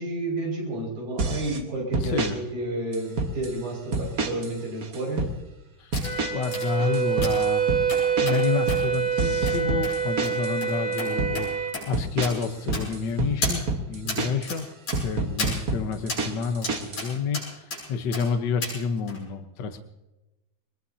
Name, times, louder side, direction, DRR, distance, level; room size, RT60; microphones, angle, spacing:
voice 1, 0.0-5.3 14.0-14.3, right 1 dB, 65° right, -1 dB, 7.3 m, -31 dB
sound 1, 1.2-1.6 1.9-2.3 2.9-3.6 3.9-4.5 4.8-5.3 5.9-6.5 6.8-10.6 10.9-11.4 11.9-14.5 14.9-17.1, right 3 dB, 40° right, 1.4 m, -28 dB
voice 2, 2.0-2.4 5.8-5.9 6.3-7.9 8.2-13.6 13.9-14.7 15.0-19.8, left 5 dB, 85° left, 8 dB, 0.9 m, -29 dB
sound 2, 5.9-6.1 6.5-6.7 7.2-7.5 7.9-8.4 8.7-8.8 9.5-9.6 9.8-10.0 10.2-10.3 10.6-10.7 11.0-11.1 11.4-11.5 11.7-11.9 12.2-12.3 12.7-13.1 13.4-13.6 14.1-14.2 14.5-14.6 14.9-15.0 15.4-15.6 16.1-16.2 16.6-17.1 17.3-17.8 18.1-18.2 18.6-18.7 19.1-19.2, left 2 dB, 55° left, 9.1 m, -32 dB
Wind instrument woodwind instrument, 6.0-11.8, right 7 dB, 10° left, 4.5 m, -26 dB
23.0 x 21.0 x 2.8 m, 1.0 s
omnidirectional pair, 3.6 m